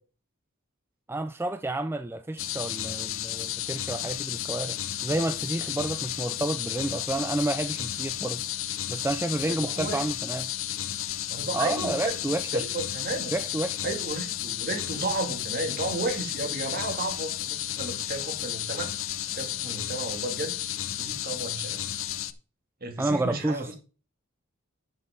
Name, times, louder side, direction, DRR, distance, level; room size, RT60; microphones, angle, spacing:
voice 1, 1.1-8.4 8.9-10.5 11.5-12.6 13.3-13.8 23.0-23.7, right 2 dB, 10° right, 0.3 m, -30 dB
sound 1, 2.4-22.3, left 12 dB, 65° left, 0.7 m, -33 dB
voice 2, 9.5-10.0 11.3-12.2 12.5-13.3 13.8-18.9 19.3-20.6 21.0-21.9 22.8-23.7, right 2 dB, 45° right, 2.3 m, -33 dB
11.0 x 6.4 x 3.7 m
head